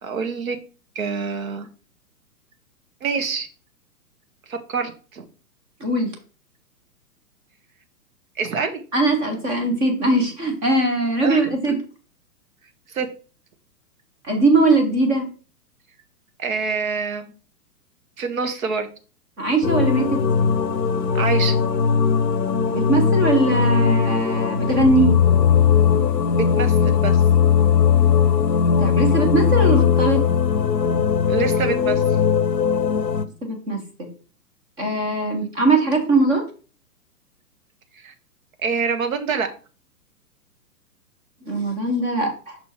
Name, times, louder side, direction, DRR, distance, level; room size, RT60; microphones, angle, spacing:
voice 1, 0.0-0.6 0.9-1.7 3.0-3.5 4.5-5.2 8.4-8.8 11.2-11.5 12.9-13.1 16.4-17.3 18.2-18.9 21.1-21.6 26.3-27.2 31.3-32.0 38.0-38.1 38.6-39.5, right 5 dB, 55° right, 8 dB, 1.3 m, -26 dB
voice 2, 5.8-6.1 8.9-11.8 14.2-15.2 19.4-20.2 22.7-25.1 28.8-30.2 33.4-33.8 34.8-36.4 41.5-42.6, right 2 dB, 10° right, 3 dB, 0.5 m, -20 dB
sound 1, 19.6-33.3, left 7 dB, 90° left, 0.7 m, -19 dB
6.0 x 4.3 x 4.3 m, 0.37 s
figure-of-eight pair, 115°, 48 cm